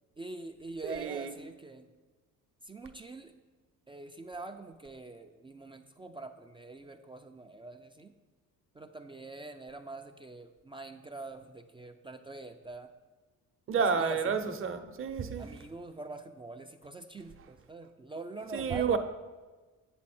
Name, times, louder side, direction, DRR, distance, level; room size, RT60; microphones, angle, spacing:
voice 1, 0.2-1.9 2.6-3.3 3.9-8.1 8.8-12.9 13.8-14.6 15.4-19.0, right 2 dB, 15° right, 0.4 m, -44 dB
voice 2, 0.8-1.3 13.7-15.5 18.5-19.0, right 6 dB, 40° right, 0.7 m, -30 dB
7.8 x 7.3 x 4.3 m
cardioid pair, 105°, 33 cm